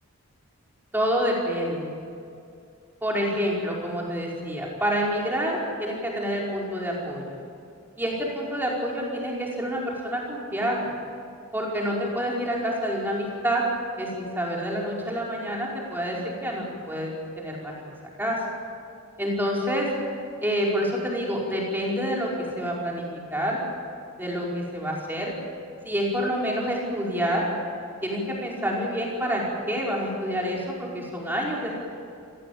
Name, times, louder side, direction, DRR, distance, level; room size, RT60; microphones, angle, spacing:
voice 1, 0.9-1.9 3.0-7.4 8.0-11.0 11.5-13.6 14.0-18.4 19.2-19.9 20.4-23.0 23.3-23.6 24.2-25.3 25.8-27.4 28.0-31.8, equal, 10° right, -3 dB, 5.0 m, -28 dB
27.5 x 17.5 x 8.7 m, 2.5 s
head